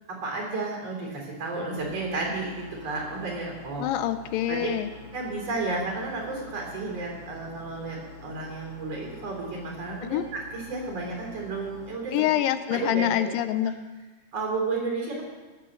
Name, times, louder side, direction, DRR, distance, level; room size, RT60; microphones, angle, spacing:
voice 1, 0.1-3.9 4.5-4.7 5.1-12.3 12.7-13.3 14.3-15.2, right 3 dB, 45° right, -1 dB, 4.9 m, -32 dB
sound 1, 1.8-11.9, left 1 dB, 40° left, 2.7 m, -46 dB
voice 2, 3.8-4.9 10.1-10.2 12.1-13.8, left 12 dB, 85° left, 11 dB, 2.4 m, -26 dB
17.0 x 7.9 x 7.0 m, 1.3 s
omnidirectional pair, 3.9 m